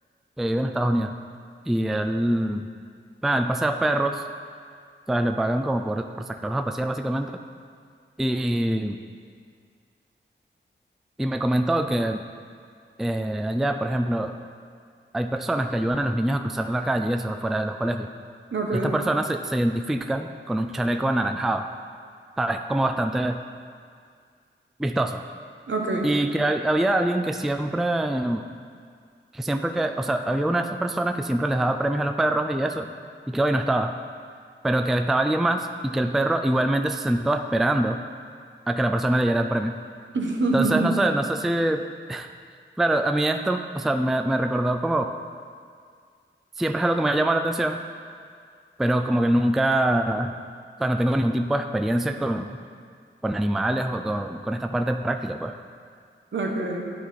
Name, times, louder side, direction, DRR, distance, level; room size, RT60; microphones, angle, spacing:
voice 1, 0.4-1.1 1.7-2.7 3.2-4.2 5.1-7.3 8.2-9.0 11.2-12.2 13.0-14.3 15.1-18.1 18.7-21.7 22.4-23.4 24.8-25.2 26.0-28.5 29.3-32.9 33.3-33.9 34.6-38.0 38.7-39.8 40.5-41.8 42.1-42.3 42.8-45.1 46.6-47.8 48.8-50.3 50.8-52.5 53.2-55.5, right 1 dB, ahead, 6 dB, 0.3 m, -24 dB
voice 2, 18.5-19.0 25.7-26.1 40.1-41.0 56.3-56.9, right 3 dB, 70° right, 0 dB, 1.1 m, -25 dB
11.0 x 4.6 x 4.1 m, 2.1 s
wide cardioid pair, 65°, 20 cm